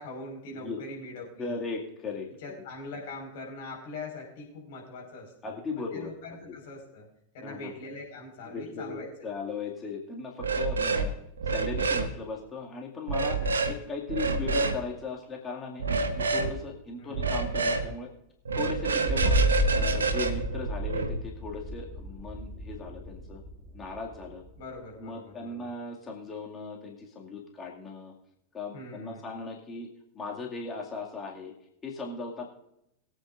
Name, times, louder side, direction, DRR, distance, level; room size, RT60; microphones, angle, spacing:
voice 1, 0.0-1.6 2.4-5.3 5.9-7.1 7.3-9.1 13.4-13.5 14.4-14.7 17.0-17.2 24.6-25.7 28.7-29.3, left 2 dB, 55° left, 0 dB, 5.0 m, -42 dB
voice 2, 1.4-2.3 5.4-6.1 7.4-7.7 8.5-11.1 11.5-15.9 16.2-18.1 18.6-19.4 19.7-23.4 23.7-24.4 25.0-28.1 28.5-29.9 30.1-31.5 31.8-32.4, left 4 dB, 20° left, -1 dB, 2.2 m, -37 dB
sound 1, 10.4-11.1 11.4-12.1 13.1-13.7 14.1-14.8 15.8-16.5 17.1-17.9 18.5-21.2, right 4 dB, 70° right, 1.0 m, -28 dB
sound 2, 19.1-24.6, equal, 30° right, 1.8 m, -31 dB
22.5 x 8.9 x 2.6 m, 0.79 s
figure-of-eight pair, 90°, 0 cm